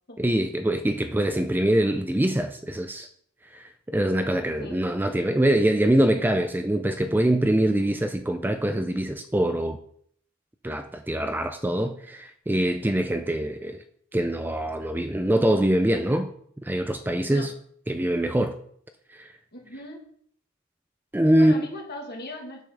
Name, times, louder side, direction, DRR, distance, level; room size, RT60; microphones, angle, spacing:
voice 1, 0.2-3.1 3.5-9.8 10.6-13.8 14.1-16.3 16.6-17.5 17.9-18.6 19.1-19.3 21.1-21.6, right 1 dB, 10° right, 0.4 m, -24 dB
voice 2, 19.5-20.1 21.4-22.7, left 2 dB, 50° left, 2.2 m, -38 dB
7.1 x 5.5 x 6.6 m
head